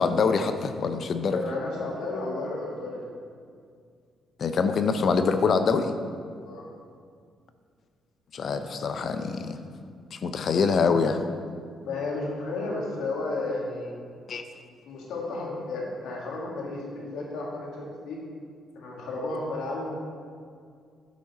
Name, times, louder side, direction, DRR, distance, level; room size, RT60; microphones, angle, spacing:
voice 1, 0.0-1.4 4.4-5.9 8.3-9.6 10.1-11.2 14.3-14.4, left 5 dB, 55° left, 8 dB, 0.5 m, -24 dB
voice 2, 1.3-3.0 6.4-6.7 10.3-10.6 11.8-13.9 14.9-18.2 18.8-20.0, left 2 dB, 85° left, -3 dB, 1.7 m, -33 dB
9.0 x 5.2 x 4.0 m, 2.2 s
cardioid pair, 90°, 0 cm